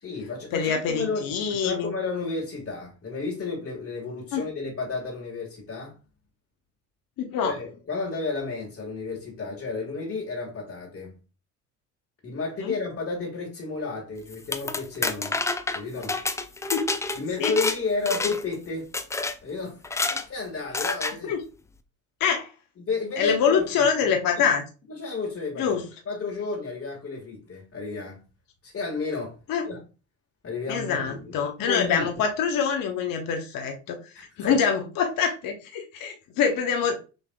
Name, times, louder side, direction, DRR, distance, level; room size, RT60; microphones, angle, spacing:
voice 1, 0.0-6.0 7.4-11.1 12.2-15.4 15.7-16.2 17.1-18.9 19.4-19.8 20.1-21.3 22.8-24.1 24.4-24.5 24.9-25.8 26.0-28.2 28.6-29.4 29.6-29.8 30.4-32.2 34.1-34.7, left 4 dB, 30° left, 1.7 m, -32 dB
voice 2, 0.5-1.9 4.3-4.4 7.2-7.5 12.6-12.7 16.0-16.1 16.7-16.8 17.4-17.5 21.2-21.4 22.2-22.5 23.2-24.6 25.6-25.8 29.5-29.7 30.7-37.0, left 7 dB, 50° left, 1.1 m, -25 dB
sound 1, 14.3-17.8 18.1-18.5 18.9-19.3 19.8-20.2 20.7-21.1, left 3 dB, 10° left, 0.3 m, -28 dB
6.4 x 3.2 x 2.2 m
hypercardioid pair, 60°, 43 cm